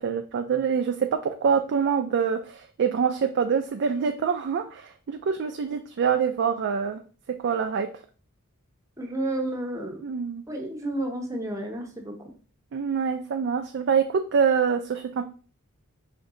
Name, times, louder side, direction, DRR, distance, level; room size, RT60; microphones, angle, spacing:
voice 1, 0.0-7.0 7.4-7.9 10.0-10.4 12.7-15.2, right 6 dB, 50° right, 5 dB, 0.4 m, -25 dB
voice 2, 9.0-10.0 10.5-12.1, right 1 dB, 15° right, 1 dB, 1.0 m, -31 dB
5.2 x 2.6 x 3.7 m, 0.39 s
head